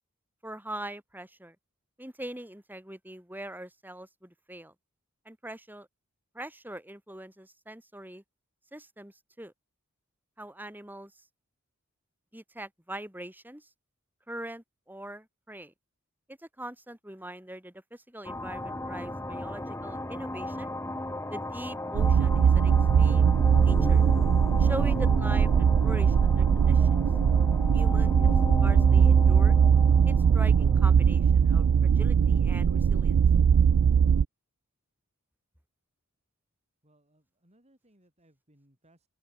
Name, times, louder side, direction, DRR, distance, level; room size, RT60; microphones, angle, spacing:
voice 1, 0.4-1.6 2.0-4.7 5.2-5.9 6.3-8.2 8.7-9.5 10.4-11.1 12.3-13.7 14.3-15.7 16.3-20.7 21.3-23.4 23.6-24.0 24.6-27.0 27.7-28.4 28.6-29.6 30.0-33.2, right 1 dB, 10° right, 6.6 m, -42 dB
sound 1, 18.2-32.4, left 1 dB, 15° left, 3.6 m, -36 dB
sound 2, 21.9-34.3, right 7 dB, 85° right, 0.4 m, -21 dB
voice 2, 36.8-39.1, right 1 dB, 30° right, 5.5 m, -65 dB
open air
head